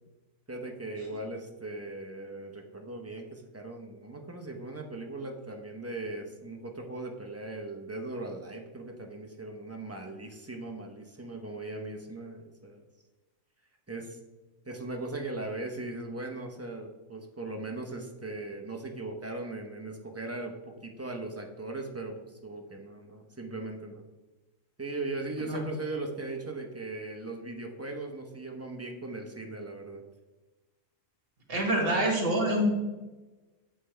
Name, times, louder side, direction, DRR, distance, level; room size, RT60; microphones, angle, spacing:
voice 1, 0.5-12.8 13.9-14.2 14.6-24.0 24.8-30.0, right 2 dB, 15° right, 2 dB, 0.5 m, -39 dB
voice 2, 31.5-32.7, equal, 50° right, 1 dB, 1.7 m, -26 dB
8.2 x 5.6 x 3.3 m, 1.2 s
omnidirectional pair, 1.4 m